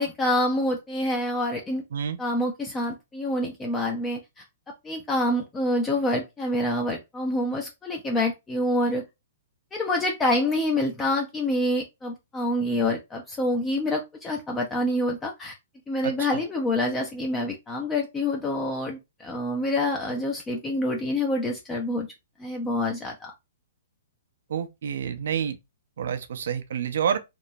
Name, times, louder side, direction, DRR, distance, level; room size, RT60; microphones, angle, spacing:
voice 1, 0.0-1.8 2.2-4.4 4.8-9.0 9.7-15.6 15.9-22.1 22.4-23.3, left 1 dB, 15° left, 0.5 m, -27 dB
voice 2, 16.0-16.4 24.5-25.6 26.0-27.2, right 8 dB, 65° right, 0.5 m, -28 dB
3.0 x 2.1 x 2.6 m
hypercardioid pair, 125°, 0 cm